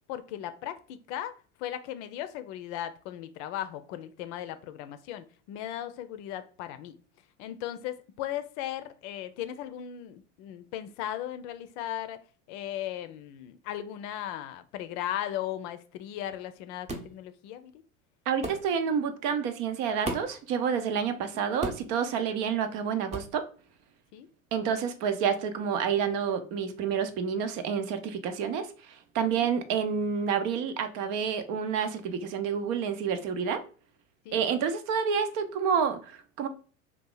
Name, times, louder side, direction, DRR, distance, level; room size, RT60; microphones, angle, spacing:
voice 1, 0.1-6.9 7.4-12.2 12.5-17.7 21.3-21.4 24.1-24.3 29.4-29.5 34.3-34.4, left 11 dB, 60° left, 0.5 m, -37 dB
sound 1, 16.9-17.1 18.4-18.7 20.0-20.4 21.6-21.9 23.1-23.3, right 2 dB, 15° right, 0.7 m, -34 dB
voice 2, 18.3-23.4 24.5-33.6 34.3-36.5, right 7 dB, 55° right, 0.6 m, -29 dB
2.8 x 2.4 x 3.8 m
hypercardioid pair, 80°, 39 cm